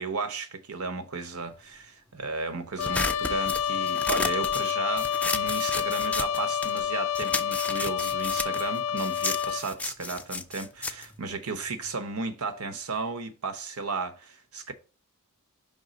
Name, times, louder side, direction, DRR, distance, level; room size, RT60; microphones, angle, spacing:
voice 1, 0.0-14.7, right 4 dB, 80° right, 0.9 m, -34 dB
Trumpet, 2.8-9.6, left 8 dB, 85° left, 0.4 m, -28 dB
sound 1, 2.8-6.9 7.1-12.0, left 3 dB, 5° left, 0.3 m, -33 dB
5.4 x 3.6 x 5.1 m
head